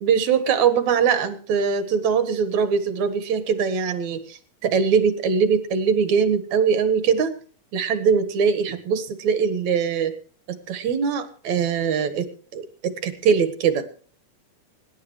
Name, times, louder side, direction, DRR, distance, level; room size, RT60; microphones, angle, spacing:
voice 1, 0.0-7.3 7.7-10.2 10.5-12.3 12.5-13.8, right 6 dB, 75° right, 10 dB, 2.8 m, -22 dB
24.5 x 11.5 x 3.2 m, 0.43 s
omnidirectional pair, 3.4 m